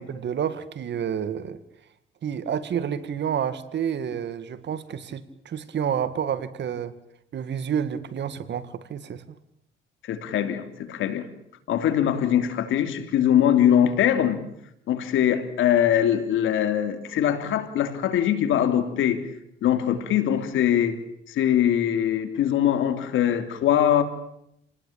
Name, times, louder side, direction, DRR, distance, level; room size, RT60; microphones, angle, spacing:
voice 1, 0.0-1.6 2.2-6.9 7.3-9.2, right 8 dB, 60° right, 13 dB, 2.2 m, -29 dB
voice 2, 10.0-11.3 11.7-14.4 14.9-19.3 19.6-21.0 21.3-24.0, left 10 dB, 85° left, 9 dB, 3.1 m, -22 dB
29.5 x 19.5 x 8.9 m, 0.76 s
cardioid pair, 90°, 20 cm